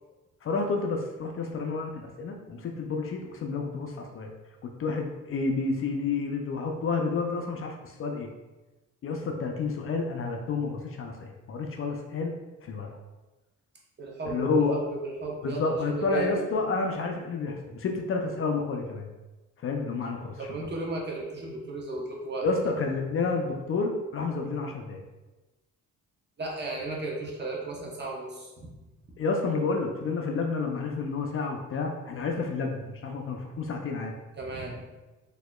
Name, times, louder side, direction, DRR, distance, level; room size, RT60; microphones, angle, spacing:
voice 1, 0.4-4.3 4.6-7.7 8.0-8.3 9.0-12.3 12.6-12.9 14.3-14.8 15.4-19.1 19.6-20.5 22.4-25.0 29.2-34.1, left 4 dB, 45° left, 3 dB, 0.5 m, -30 dB
voice 2, 14.0-16.3 20.4-22.5 26.4-28.7 34.4-34.8, right 3 dB, 35° right, -2 dB, 0.9 m, -34 dB
4.1 x 2.8 x 2.3 m, 1.1 s
cardioid pair, 90°, 30 cm